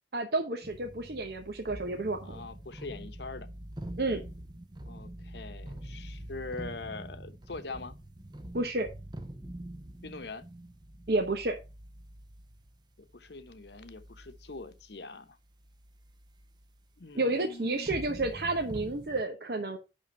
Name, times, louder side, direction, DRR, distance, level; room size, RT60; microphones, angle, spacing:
voice 1, 0.1-2.4 4.0-4.2 8.5-8.9 11.1-11.6 17.1-19.8, right 2 dB, 60° right, 0.9 m, -30 dB
sound 1, 0.6-17.2 17.8-19.2, right 1 dB, 25° right, 0.7 m, -45 dB
voice 2, 2.2-3.5 4.9-7.9 10.0-10.4 13.0-15.4 17.0-17.9, left 3 dB, 70° left, 1.0 m, -43 dB
10.5 x 3.7 x 5.5 m
head